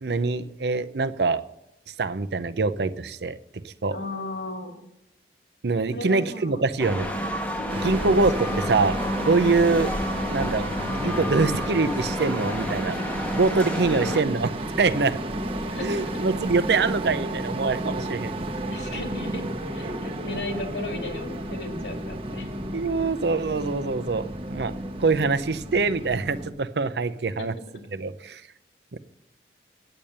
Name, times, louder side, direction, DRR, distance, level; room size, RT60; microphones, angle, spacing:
voice 1, 0.0-1.4 2.0-4.0 5.6-7.1 7.8-8.9 9.3-9.9 10.3-13.0 13.3-14.5 14.8-15.2 15.8-18.3 22.7-24.7 25.0-27.5 27.9-28.4 28.9-29.0, right 4 dB, 70° right, 12 dB, 0.6 m, -24 dB
voice 2, 3.9-4.8 5.9-6.6 6.9-7.3 7.6-8.1 8.4-8.6 13.8-14.2 15.7-16.2 18.7-19.4 19.7-22.5 27.4-27.6, left 2 dB, 80° left, 5 dB, 2.1 m, -36 dB
sound 1, 6.8-14.2, equal, 10° left, 0.9 m, -30 dB
sound 2, 7.7-26.5, right 1 dB, 30° right, 0.9 m, -32 dB
8.8 x 8.7 x 6.6 m, 0.81 s
head